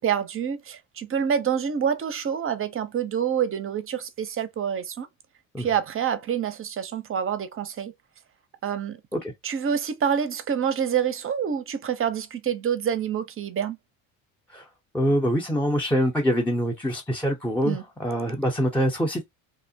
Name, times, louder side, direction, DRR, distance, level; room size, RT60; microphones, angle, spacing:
voice 1, 0.0-5.1 5.6-7.9 8.6-9.0 9.4-13.8 17.6-17.8, right 8 dB, 30° right, 0.6 m, -27 dB
voice 2, 14.9-19.2, equal, 5° left, 0.6 m, -24 dB
2.9 x 2.0 x 2.7 m
hypercardioid pair, 75°, 40 cm